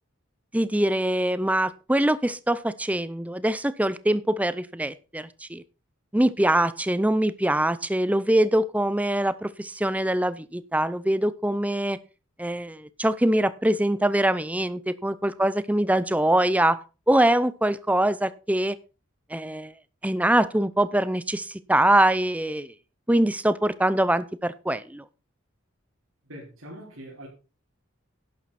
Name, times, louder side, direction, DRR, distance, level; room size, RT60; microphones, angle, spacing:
voice 1, 0.5-5.6 6.1-12.0 12.4-16.8 17.1-18.8 19.3-19.7 20.0-22.7 23.1-25.0, right 1 dB, 5° right, 0.6 m, -23 dB
voice 2, 26.2-27.3, equal, 85° right, 4.7 m, -42 dB
11.5 x 10.5 x 4.3 m
head